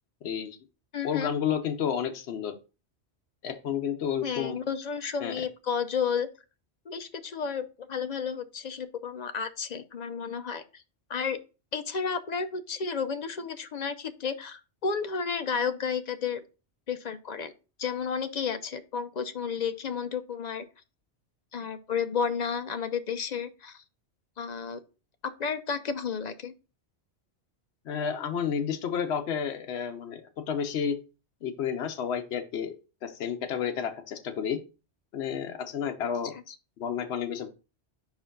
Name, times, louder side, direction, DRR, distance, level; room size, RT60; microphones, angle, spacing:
voice 1, 0.2-0.6 1.0-2.5 3.4-4.6 5.2-5.3 27.9-30.2 30.5-31.0 31.4-32.8 33.0-34.6 35.1-36.3 36.8-37.5, left 7 dB, 70° left, 5 dB, 1.0 m, -31 dB
voice 2, 0.9-1.3 4.2-6.3 6.9-10.8 11.1-11.4 11.7-16.4 16.9-17.5 17.8-20.7 21.5-23.8 24.4-24.8 25.2-26.5 36.3-36.5, left 6 dB, 50° left, 10 dB, 0.5 m, -32 dB
5.2 x 4.7 x 3.8 m, 0.32 s
omnidirectional pair, 1.2 m